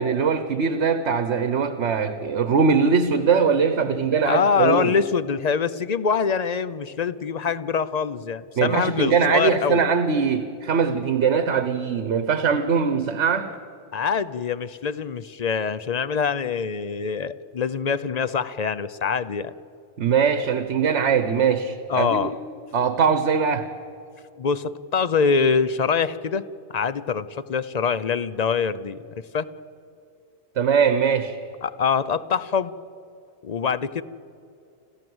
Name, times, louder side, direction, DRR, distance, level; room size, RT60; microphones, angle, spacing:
voice 1, 0.0-4.9 8.6-13.5 20.0-22.3 22.7-23.7 30.6-31.4, right 6 dB, 70° right, 11 dB, 1.3 m, -21 dB
voice 2, 4.2-9.8 13.9-19.5 21.9-22.3 24.4-26.4 26.7-29.0 29.3-29.5 31.6-32.7 33.4-34.0, left 6 dB, 45° left, 14 dB, 0.6 m, -24 dB
29.0 x 13.5 x 7.9 m, 2.6 s
omnidirectional pair, 1.2 m